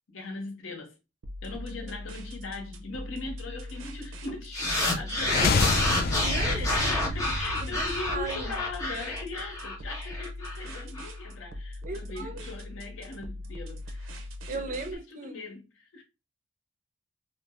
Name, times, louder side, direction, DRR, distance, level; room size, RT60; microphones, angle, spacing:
voice 1, 0.1-1.0 1.4-5.3 6.4-16.0, left 3 dB, 80° left, 0.8 m, -40 dB
sound 1, 1.2-14.9, left 1 dB, 85° right, 0.6 m, -41 dB
sound 2, 4.5-11.1, left 1 dB, 15° left, 0.7 m, -30 dB
sound 3, 5.1-9.1, left 3 dB, 50° left, 0.3 m, -29 dB
voice 2, 5.8-7.0 7.6-8.6 11.8-12.5 14.5-15.4, right 3 dB, 40° right, 0.5 m, -37 dB
2.5 x 2.0 x 3.4 m
head